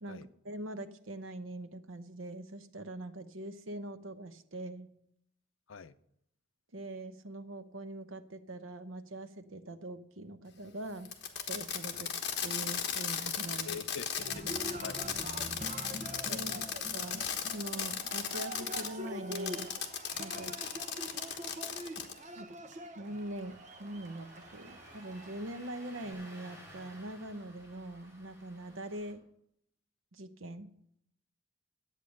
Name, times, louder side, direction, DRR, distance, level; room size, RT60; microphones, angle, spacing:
voice 1, 0.0-4.9 6.7-11.1 11.5-12.1 12.4-13.8 16.3-16.6 16.9-19.7 20.2-20.5 22.4-22.5 23.0-29.2 30.1-30.7, right 1 dB, 85° right, 10 dB, 0.9 m, -43 dB
Fireworks, 11.1-18.9 19.3-22.2, left 8 dB, 55° left, 1.3 m, -36 dB
voice 2, 13.7-15.2 16.2-16.8 20.3-20.5, left 6 dB, 85° left, 13 dB, 0.6 m, -47 dB
Cheering, 14.1-26.1, right 1 dB, 35° right, 0.9 m, -45 dB
Engine starting, 23.0-29.1, equal, 15° right, 2.9 m, -55 dB
11.0 x 8.4 x 6.4 m, 0.73 s
head